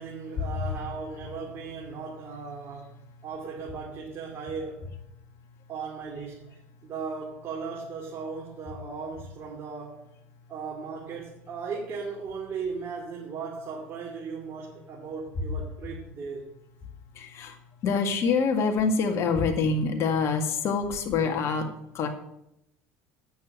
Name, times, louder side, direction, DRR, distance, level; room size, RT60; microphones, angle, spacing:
voice 1, 0.0-4.9 5.7-10.1 10.5-16.5, right 5 dB, 45° right, 2.7 m, -37 dB
voice 2, 17.1-21.7 21.9-22.1, left 5 dB, 50° left, 1.9 m, -26 dB
9.2 x 7.1 x 8.0 m
hypercardioid pair, 85°, 6 cm